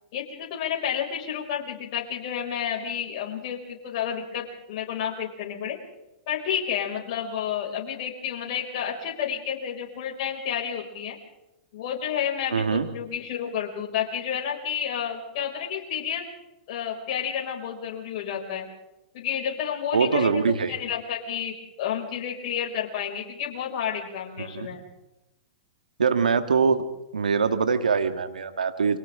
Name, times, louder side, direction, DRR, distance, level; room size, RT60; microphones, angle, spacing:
voice 1, 0.1-5.8 6.3-11.2 11.7-16.2 16.7-18.7 19.1-24.8, left 8 dB, 55° left, -1 dB, 5.8 m, -30 dB
voice 2, 12.5-12.9 19.9-20.8 24.4-24.8 26.0-26.9 27.1-29.0, right 5 dB, 90° right, 9 dB, 1.8 m, -23 dB
30.0 x 25.0 x 3.8 m, 0.94 s
hypercardioid pair, 115°, 4 cm